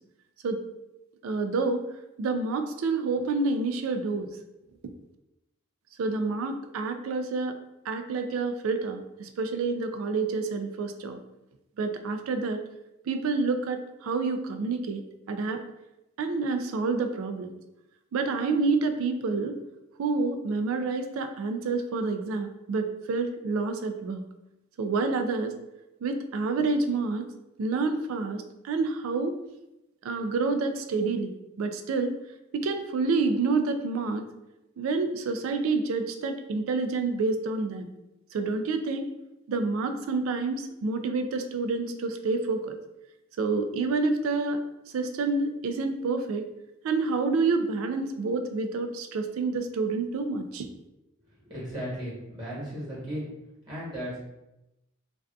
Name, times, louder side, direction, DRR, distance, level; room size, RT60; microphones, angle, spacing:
voice 1, 1.2-1.8 2.2-4.3 6.0-7.6 7.9-11.2 11.8-12.6 13.1-15.0 15.3-15.6 16.2-17.5 18.1-19.5 20.0-24.2 24.8-25.5 26.0-27.2 27.6-29.3 30.0-31.3 31.6-32.1 32.5-34.2 34.8-37.9 38.3-39.0 39.5-42.7 43.4-44.6 44.9-46.4 46.8-50.7, right 3 dB, 75° right, 7 dB, 0.3 m, -28 dB
voice 2, 51.3-53.3 53.7-54.2, equal, 20° right, -7 dB, 1.2 m, -36 dB
2.5 x 2.2 x 2.3 m, 0.91 s
head